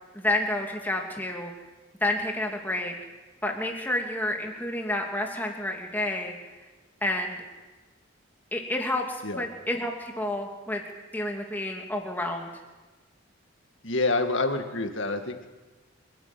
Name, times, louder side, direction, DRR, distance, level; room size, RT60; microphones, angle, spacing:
voice 1, 0.1-1.5 2.0-2.9 3.4-6.3 7.0-7.4 8.5-10.8 11.1-12.5, left 1 dB, 10° left, 1 dB, 2.7 m, -29 dB
voice 2, 13.8-15.5, left 3 dB, 65° left, 5 dB, 2.1 m, -27 dB
27.0 x 12.5 x 9.2 m, 1.2 s
head